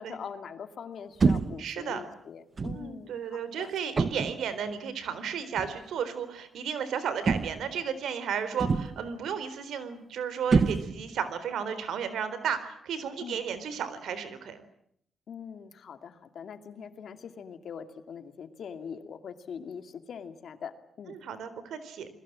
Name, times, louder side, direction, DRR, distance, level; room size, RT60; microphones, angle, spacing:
voice 1, 0.0-3.7 13.2-13.4 15.3-21.2, left 7 dB, 60° left, 9 dB, 2.4 m, -42 dB
sound 1, 1.2-1.7 2.6-2.9 4.0-4.5 5.6-5.8 7.3-7.8 8.6-9.1 10.5-11.2, right 4 dB, 35° right, 1.1 m, -26 dB
voice 2, 1.6-2.0 2.7-14.6 21.1-22.1, right 7 dB, 90° right, 13 dB, 3.9 m, -33 dB
29.0 x 21.5 x 7.5 m, 0.69 s
cardioid pair, 130°, 0 cm